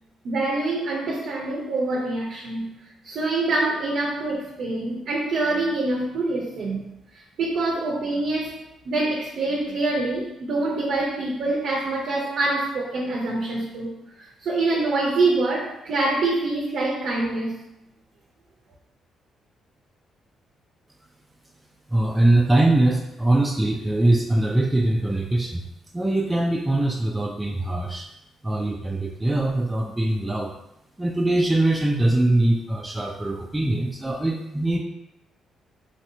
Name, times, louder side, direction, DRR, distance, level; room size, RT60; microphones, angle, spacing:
voice 1, 0.2-2.8 3.0-6.9 7.4-8.6 8.9-13.9 14.2-17.6, right 2 dB, 70° right, -2 dB, 0.6 m, -25 dB
voice 2, 21.9-25.6 25.9-28.1 28.4-30.5 31.0-34.8, right 1 dB, 10° right, 0 dB, 0.3 m, -22 dB
3.2 x 2.7 x 2.6 m, 0.88 s
cardioid pair, 90°, 0 cm